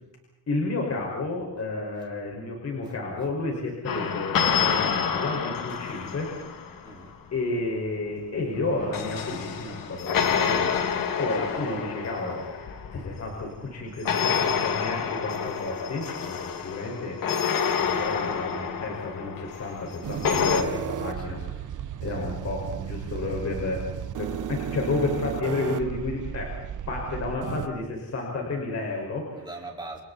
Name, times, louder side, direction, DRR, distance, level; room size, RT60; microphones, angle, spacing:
voice 1, 0.5-6.7 7.3-17.2 17.7-21.6 22.0-23.8 24.2-26.5 26.9-29.5, left 3 dB, 45° left, -1 dB, 5.5 m, -31 dB
sound 1, 3.9-7.0 8.5-13.5 14.1-20.6, left 7 dB, 70° left, 2.3 m, -28 dB
voice 2, 6.8-7.1 20.6-21.7 22.2-22.3 29.3-30.0, right 2 dB, 15° right, -1 dB, 4.7 m, -43 dB
sound 2, 20.0-27.7, right 9 dB, 60° right, 1.1 m, -34 dB
30.0 x 29.0 x 4.3 m, 0.95 s
wide cardioid pair, 175°, 34 cm